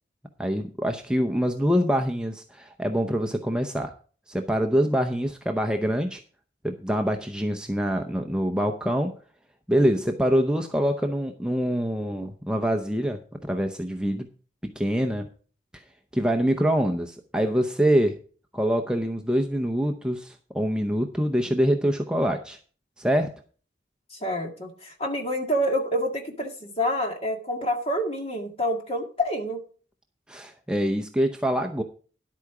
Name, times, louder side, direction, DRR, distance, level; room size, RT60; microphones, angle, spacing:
voice 1, 0.4-3.9 4.3-6.2 6.6-9.1 9.7-14.3 14.6-15.3 15.7-15.8 16.1-18.2 18.5-22.6 23.0-23.3 30.3-31.8, equal, 5° right, 4 dB, 0.6 m, -25 dB
voice 2, 24.1-29.6, equal, 30° left, 3 dB, 1.9 m, -27 dB
11.0 x 8.5 x 4.8 m, 0.41 s
head